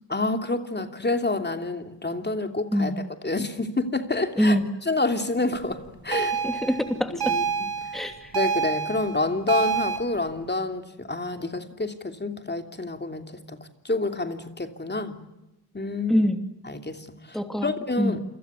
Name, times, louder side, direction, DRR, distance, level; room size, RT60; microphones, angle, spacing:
voice 1, 0.1-6.3 7.3-7.4 8.3-13.6 13.8-15.2 15.7-16.3 16.6-18.2, left 2 dB, 30° left, 6 dB, 3.0 m, -28 dB
sound 1, 6.1-10.0, right 7 dB, 80° right, 6.9 m, -27 dB
voice 2, 6.4-7.3 7.9-8.3 16.1-16.4 17.3-17.7 18.0-18.1, equal, ahead, 6 dB, 2.9 m, -24 dB
29.0 x 24.5 x 8.2 m, 0.95 s
wide cardioid pair, 90°, 37 cm